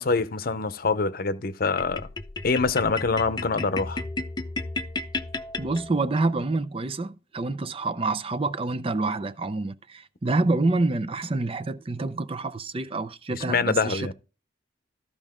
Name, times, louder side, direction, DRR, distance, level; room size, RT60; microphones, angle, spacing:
voice 1, 0.0-2.1 2.4-4.0 13.5-14.1, left 4 dB, 55° left, 0.8 m, -25 dB
sound 1, 1.8-6.2, left 3 dB, 20° left, 0.5 m, -34 dB
voice 2, 5.6-14.1, right 2 dB, 30° right, 0.5 m, -27 dB
14.0 x 5.0 x 3.7 m
head